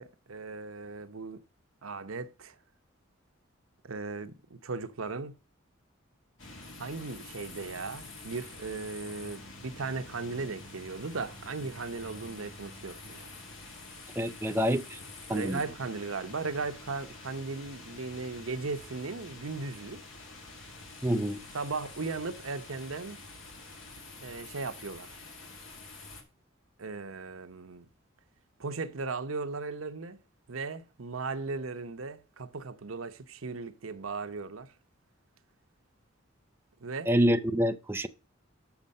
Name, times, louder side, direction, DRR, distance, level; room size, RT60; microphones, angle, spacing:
voice 1, 0.0-1.4 1.8-2.6 3.8-5.3 6.8-13.3 15.3-20.0 21.5-23.2 24.2-25.1 26.8-27.9 28.6-30.2 30.5-34.7 36.8-37.1, right 4 dB, 85° right, 0.9 m, -37 dB
sound 1, 6.4-26.2, left 2 dB, 65° left, 2.2 m, -47 dB
voice 2, 14.2-15.0 15.3-15.6 21.0-21.4 37.1-38.1, equal, 10° right, 0.4 m, -27 dB
7.1 x 6.3 x 5.3 m
head